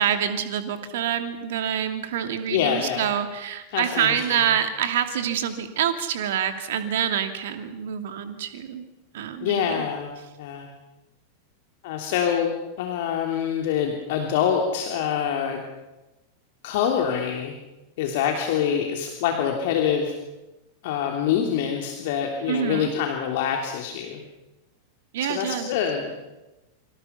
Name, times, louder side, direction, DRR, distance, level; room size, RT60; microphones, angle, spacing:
voice 1, 0.0-8.9 9.1-9.9 22.5-22.9 25.1-25.7, right 9 dB, 55° right, 8 dB, 2.7 m, -26 dB
voice 2, 2.5-3.0 3.7-4.2 9.4-10.1 10.4-10.7 11.8-15.6 16.6-17.5 18.0-20.1 20.8-24.2 25.2-26.1, left 8 dB, 50° left, 2 dB, 3.0 m, -25 dB
28.5 x 25.0 x 5.8 m, 1.0 s
figure-of-eight pair, 90°, 0 cm